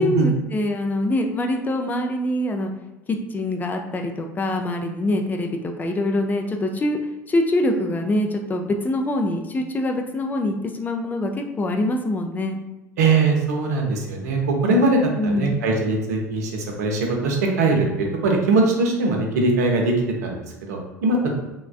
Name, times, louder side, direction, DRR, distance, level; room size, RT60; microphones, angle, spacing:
voice 1, 0.0-2.7 3.1-7.0 7.3-12.6 15.2-15.5, left 1 dB, 20° left, 3 dB, 0.3 m, -24 dB
voice 2, 13.0-17.9 18.2-19.9 20.2-20.4 20.7-21.3, right 3 dB, 65° right, 1 dB, 0.6 m, -21 dB
3.2 x 2.2 x 2.3 m, 0.99 s
figure-of-eight pair, 70°, 10 cm